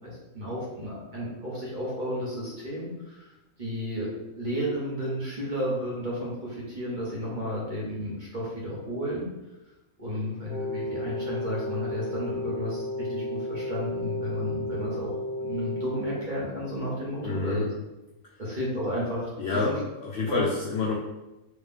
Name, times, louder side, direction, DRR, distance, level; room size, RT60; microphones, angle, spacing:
voice 1, 0.0-4.1 4.4-9.3 10.0-15.1 15.4-17.6 18.4-19.7 20.2-20.4, equal, 35° right, -6 dB, 1.2 m, -32 dB
Wind instrument woodwind instrument, 10.5-16.2, left 1 dB, 50° right, 0.8 m, -33 dB
voice 2, 17.2-17.6 18.2-18.3 19.4-19.7 20.0-20.9, left 4 dB, 65° left, -3 dB, 0.7 m, -28 dB
3.1 x 3.0 x 3.6 m, 0.99 s
omnidirectional pair, 1.5 m